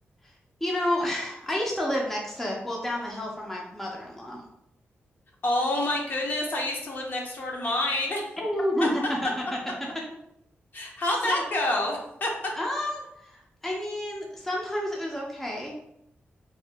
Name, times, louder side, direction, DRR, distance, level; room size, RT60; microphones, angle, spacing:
voice 1, 0.6-4.4 8.4-9.3 11.2-11.4 12.6-15.7, left 1 dB, 5° left, -2 dB, 0.5 m, -30 dB
voice 2, 5.4-8.2 10.7-12.3, left 1 dB, 50° left, 0 dB, 0.6 m, -27 dB
2.8 x 2.4 x 3.3 m, 0.77 s
wide cardioid pair, 160°, 4 cm